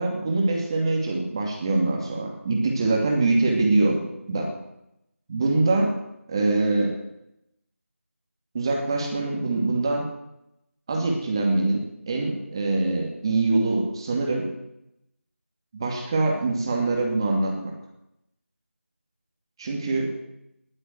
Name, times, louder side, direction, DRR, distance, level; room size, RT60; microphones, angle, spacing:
voice 1, 0.0-4.5 5.3-6.0 6.3-6.9 8.5-10.1 10.9-14.5 15.7-17.7 19.6-20.1, right 2 dB, 20° right, 1 dB, 2.4 m, -24 dB
20.0 x 7.8 x 9.4 m, 0.84 s
figure-of-eight pair, 170°, 8 cm